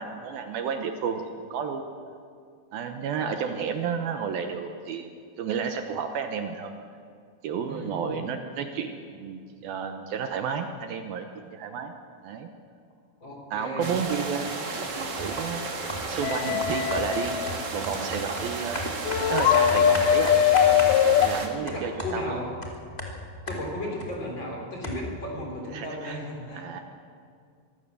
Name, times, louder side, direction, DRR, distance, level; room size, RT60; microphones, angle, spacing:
voice 1, 0.0-1.8 2.7-5.1 5.4-6.7 7.4-11.9 12.2-12.5 13.5-14.5 14.8-15.6 16.1-18.8 19.3-20.3 21.2-22.4 25.7-26.2 26.5-26.8, right 6 dB, 70° right, 6 dB, 2.7 m, -31 dB
voice 2, 7.7-8.2 13.2-13.9 21.6-22.5 23.5-26.7, left 1 dB, 30° left, -1 dB, 4.3 m, -35 dB
sound 1, 13.8-21.5, right 3 dB, 40° right, 1.7 m, -33 dB
sound 2, 15.2-15.4 15.9-16.2 16.6-24.2 24.5-24.6 24.8-25.2, left 1 dB, 15° left, 1.9 m, -36 dB
sound 3, 16.2-17.6 19.0-21.3, left 10 dB, 85° left, 1.9 m, -21 dB
24.0 x 16.5 x 7.0 m, 2.3 s
omnidirectional pair, 4.6 m